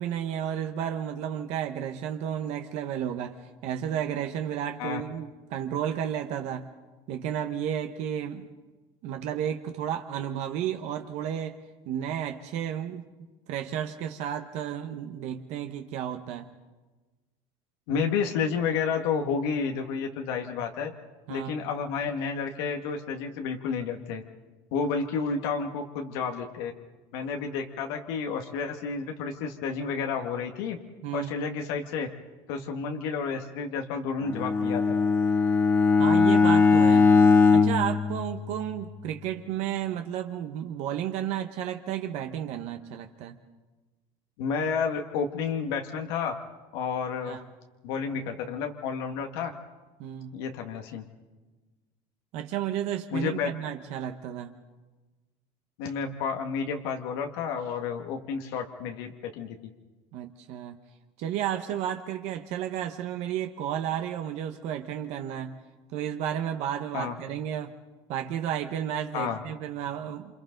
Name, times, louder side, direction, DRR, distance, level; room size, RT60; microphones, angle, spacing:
voice 1, 0.0-6.7 7.1-8.5 9.0-11.6 11.9-13.0 13.5-16.5 21.3-21.6 31.0-31.3 36.0-37.1 37.5-43.4 47.2-47.4 50.0-50.3 52.3-54.5 60.1-60.8 61.2-65.5 65.9-67.7 68.1-70.3, right 10 dB, 60° right, 5 dB, 1.2 m, -32 dB
voice 2, 17.9-20.9 21.3-24.2 24.7-26.7 27.1-30.8 31.1-32.1 32.5-34.9 44.4-46.3 46.7-47.4 47.8-49.5 50.3-51.0 53.1-53.5 55.8-59.6 66.9-67.1 69.1-69.4, left 5 dB, 85° left, 4 dB, 1.7 m, -30 dB
Bowed string instrument, 34.2-38.9, left 4 dB, 20° left, 1.3 m, -20 dB
27.5 x 26.5 x 3.9 m, 1.2 s
cardioid pair, 145°, 13 cm